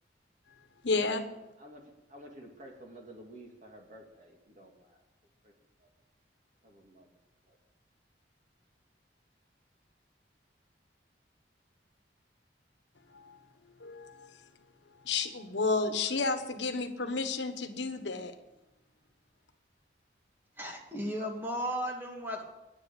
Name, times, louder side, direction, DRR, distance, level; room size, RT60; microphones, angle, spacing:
voice 1, 0.8-1.5 13.1-13.4 13.8-14.4 15.0-18.3, left 3 dB, 80° left, 8 dB, 1.3 m, -32 dB
voice 2, 1.6-5.0 5.4-5.5 5.8-5.9 6.6-7.1 7.5-7.6, right 1 dB, 40° right, 1 dB, 2.5 m, -52 dB
voice 3, 20.6-22.4, equal, 10° right, 1 dB, 2.1 m, -35 dB
10.5 x 10.5 x 8.4 m, 0.97 s
head